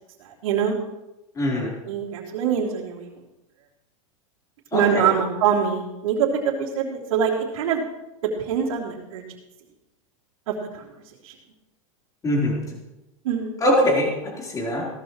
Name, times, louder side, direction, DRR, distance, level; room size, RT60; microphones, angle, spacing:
voice 1, 0.2-0.7 1.8-3.1 4.7-7.8 8.2-9.2 10.5-10.8 11.2-11.3 13.2-13.6, right 7 dB, 75° right, -6 dB, 3.3 m, -24 dB
voice 2, 1.3-1.7 4.7-5.1 12.2-12.8 13.6-14.9, left 1 dB, 20° left, -3 dB, 4.2 m, -23 dB
17.0 x 13.5 x 3.2 m, 0.97 s
supercardioid pair, 135°, 18 cm